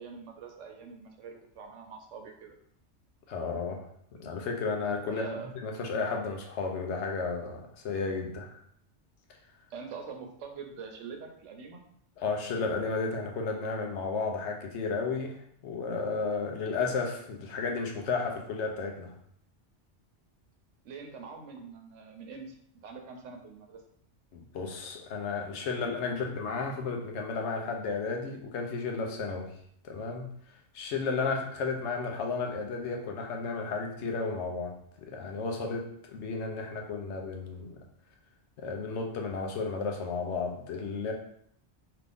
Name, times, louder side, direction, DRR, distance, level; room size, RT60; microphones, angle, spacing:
voice 1, 0.0-2.5 5.1-5.5 9.7-11.8 20.8-22.5 22.8-23.8, right 5 dB, 85° right, 3 dB, 1.0 m, -44 dB
voice 2, 3.3-3.9 4.2-5.3 5.6-8.6 12.2-15.3 15.6-19.1 24.3-29.5 29.8-30.3 30.7-37.8 38.6-41.1, left 4 dB, 75° left, 2 dB, 0.9 m, -33 dB
3.0 x 2.5 x 3.4 m, 0.67 s
omnidirectional pair, 1.2 m